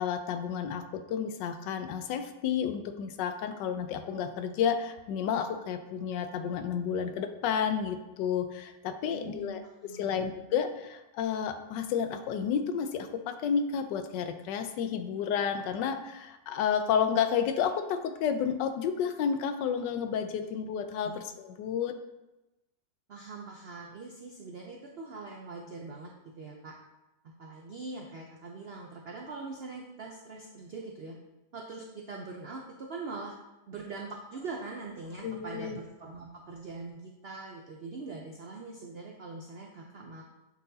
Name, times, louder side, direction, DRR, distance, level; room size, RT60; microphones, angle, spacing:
voice 1, 0.0-9.6 9.9-22.0 35.2-35.8, left 7 dB, 80° left, 8 dB, 1.2 m, -31 dB
voice 2, 9.1-10.2 21.0-21.2 23.1-26.1 26.4-26.8 27.4-31.2 31.5-33.4 33.7-40.2, right 3 dB, 85° right, 0 dB, 0.5 m, -42 dB
8.5 x 4.0 x 2.7 m, 0.99 s
omnidirectional pair, 1.9 m